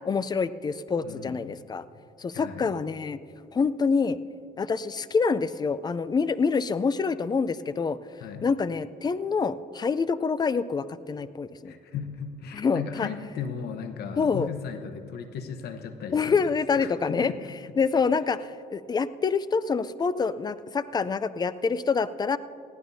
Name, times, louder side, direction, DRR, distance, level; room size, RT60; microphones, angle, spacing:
voice 1, 0.0-1.8 2.2-3.2 3.5-4.2 4.6-8.0 8.4-11.7 12.5-13.1 14.2-14.5 16.1-17.3 17.8-22.4, left 5 dB, 25° left, 15 dB, 0.5 m, -26 dB
voice 2, 1.0-1.5 2.3-2.7 8.2-8.5 11.6-17.5, left 6 dB, 70° left, 7 dB, 1.0 m, -37 dB
20.5 x 15.0 x 2.7 m, 2.3 s
cardioid pair, 110°, 17 cm